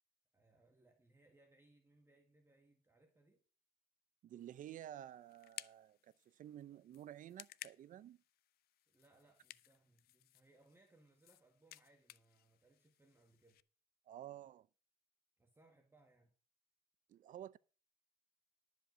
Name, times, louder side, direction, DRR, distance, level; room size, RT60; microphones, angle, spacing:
voice 1, 0.3-3.4 8.9-13.6 15.4-16.3, right 2 dB, 15° right, 1.6 m, -70 dB
voice 2, 4.2-8.2 14.1-14.7 17.1-17.6, right 11 dB, 50° right, 0.5 m, -52 dB
sound 1, 4.4-13.6, left 15 dB, 65° left, 0.5 m, -58 dB
11.5 x 5.2 x 8.0 m
cardioid pair, 110°, 17 cm